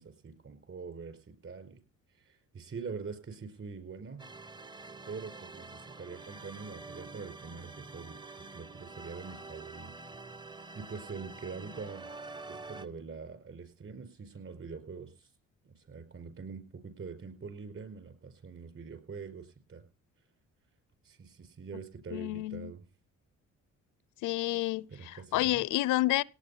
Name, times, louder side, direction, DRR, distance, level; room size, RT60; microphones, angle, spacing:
voice 1, 0.0-1.8 2.1-4.2 5.1-8.2 8.5-9.9 10.5-12.1 12.4-15.3 15.6-19.8 21.0-22.8 24.9-25.6, right 5 dB, 45° right, 4.8 m, -44 dB
sound 1, 4.2-12.9, right 3 dB, 15° right, 0.7 m, -47 dB
voice 2, 22.1-22.7 24.2-24.9 25.3-26.2, left 17 dB, 90° left, 0.6 m, -29 dB
18.0 x 9.2 x 5.5 m
cardioid pair, 90°, 30 cm